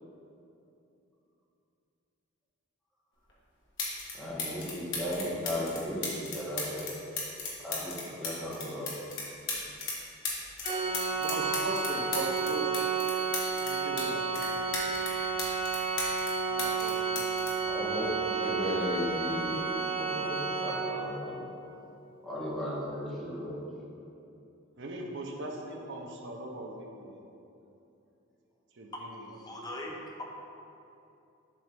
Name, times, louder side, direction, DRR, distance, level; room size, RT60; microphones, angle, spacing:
sound 1, 3.3-3.4 3.8-4.1 4.4-10.0 10.2-14.1 14.3-16.3 16.6-18.4 19.4-19.6, left 3 dB, 60° left, 1.4 m, -36 dB
voice 1, 4.1-6.9 7.6-8.9 17.6-19.5 19.9-21.5 22.2-23.7, equal, ahead, -8 dB, 1.4 m, -35 dB
Organ, 10.6-21.3, right 4 dB, 30° right, 0.4 m, -31 dB
voice 2, 11.1-12.7 13.6-14.8 16.5-17.4 24.8-27.2 28.8-29.2, right 2 dB, 60° right, 1 dB, 0.8 m, -39 dB
voice 3, 28.9-30.2, left 1 dB, 20° left, -1 dB, 0.7 m, -41 dB
7.5 x 3.3 x 5.3 m, 2.8 s
head